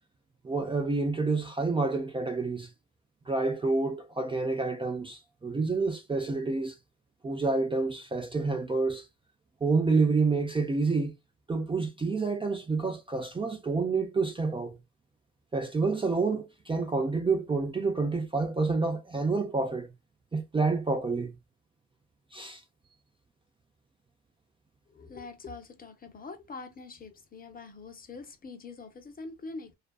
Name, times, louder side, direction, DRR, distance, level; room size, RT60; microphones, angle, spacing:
voice 1, 0.4-2.7 3.3-6.8 7.2-9.1 9.6-11.1 11.5-14.8 15.5-19.9 20.3-21.3 22.3-22.6, right 3 dB, 20° right, 0.4 m, -28 dB
voice 2, 24.9-29.7, left 3 dB, 30° left, 0.6 m, -44 dB
2.4 x 2.4 x 2.2 m
cardioid pair, 90°, 30 cm